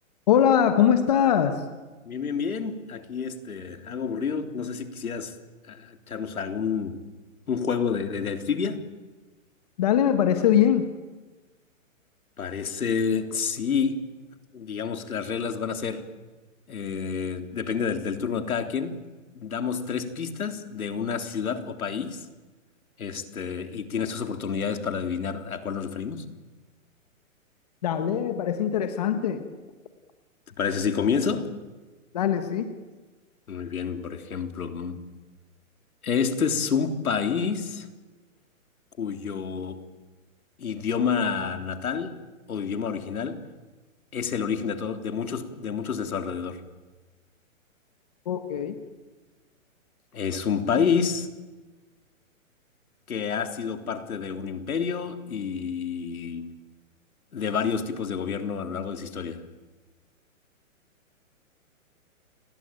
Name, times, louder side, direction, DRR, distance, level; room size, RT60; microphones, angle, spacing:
voice 1, 0.3-1.6 9.8-10.9 27.8-29.4 32.1-32.7 48.2-48.8, left 9 dB, 30° left, 8 dB, 1.4 m, -22 dB
voice 2, 2.1-5.4 5.7-7.0 7.5-8.9 12.4-14.0 14.5-16.0 16.7-19.0 19.4-22.2 23.0-26.3 30.6-31.5 33.5-35.0 36.0-37.9 39.0-39.8 40.6-42.2 42.5-43.5 44.1-46.6 50.1-51.3 53.1-56.5 57.3-59.4, left 6 dB, 90° left, 7 dB, 3.5 m, -29 dB
30.0 x 21.5 x 9.1 m, 1.2 s
hypercardioid pair, 175°, 41 cm